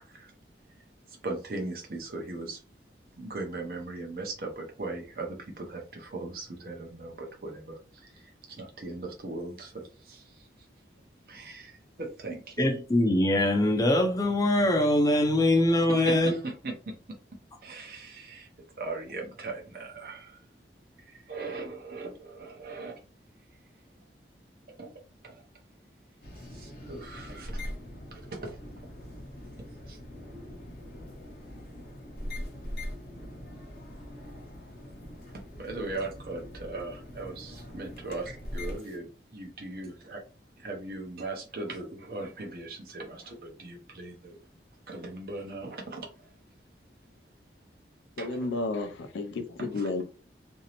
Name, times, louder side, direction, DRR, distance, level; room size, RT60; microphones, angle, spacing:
voice 1, 1.2-2.6 3.2-8.2 8.5-10.5 11.3-12.7 15.9-16.7 17.6-18.5 18.8-20.4 21.1-23.0 24.8-24.9 25.2-25.4 26.5-27.7 28.1-28.6 29.9-30.0 35.6-40.2 40.6-44.4 44.9-46.1 48.2-48.5 49.7-50.0, right 2 dB, 55° right, 0.6 m, -39 dB
voice 2, 12.6-16.4, left 1 dB, 20° left, 0.4 m, -23 dB
sound 1, 26.2-39.0, equal, 55° left, 0.8 m, -42 dB
voice 3, 48.2-50.0, left 3 dB, 90° left, 0.4 m, -32 dB
2.6 x 2.0 x 2.8 m
head